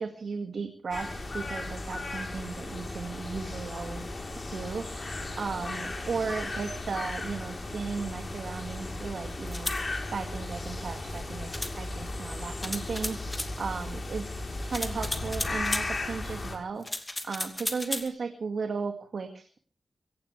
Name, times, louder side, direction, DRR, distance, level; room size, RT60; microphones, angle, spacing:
voice 1, 0.0-4.1 4.5-14.3 14.6-19.6, right 5 dB, 70° right, 5 dB, 2.1 m, -36 dB
sound 1, 0.9-16.6, left 2 dB, 35° left, 3.9 m, -36 dB
sound 2, 9.5-9.8 11.5-11.7 12.6-13.5 14.7-15.9 16.8-18.1, left 1 dB, 15° left, 2.5 m, -34 dB
23.5 x 18.0 x 3.4 m, 0.42 s
wide cardioid pair, 125°, 0 cm